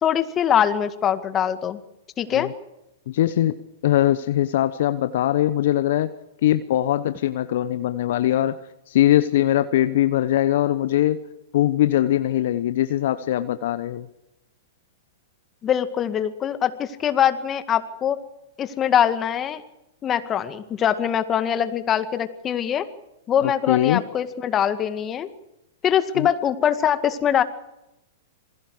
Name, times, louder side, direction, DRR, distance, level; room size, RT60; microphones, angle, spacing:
voice 1, 0.0-1.8 2.2-2.5 15.6-18.2 18.6-19.6 20.0-22.9 23.3-25.3 25.8-27.4, left 9 dB, 25° left, 10 dB, 2.0 m, -22 dB
voice 2, 3.1-3.6 3.8-6.1 6.4-11.2 11.5-14.1 23.4-24.0 26.1-26.3, left 13 dB, 60° left, 12 dB, 1.0 m, -21 dB
27.5 x 21.0 x 4.9 m, 0.91 s
hypercardioid pair, 110°, 0 cm